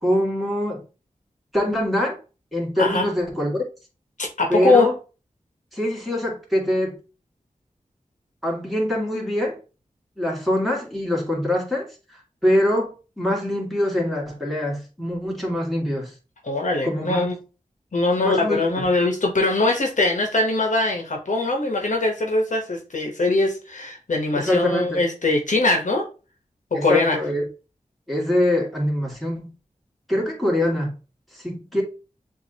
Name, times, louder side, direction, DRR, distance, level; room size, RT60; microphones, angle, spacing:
voice 1, 0.0-0.8 1.5-2.2 2.5-3.6 4.5-4.9 5.7-7.0 8.4-9.6 10.2-16.1 16.8-17.3 18.2-18.8 24.4-25.0 26.7-27.4 28.1-29.5 30.1-30.9 31.3-31.8, left 1 dB, ahead, 2.2 m, -24 dB
voice 2, 2.8-3.1 4.2-4.9 16.4-17.4 17.9-26.1 26.7-27.2, left 2 dB, 65° left, 1.0 m, -21 dB
7.1 x 2.6 x 2.8 m
cardioid pair, 40°, 14 cm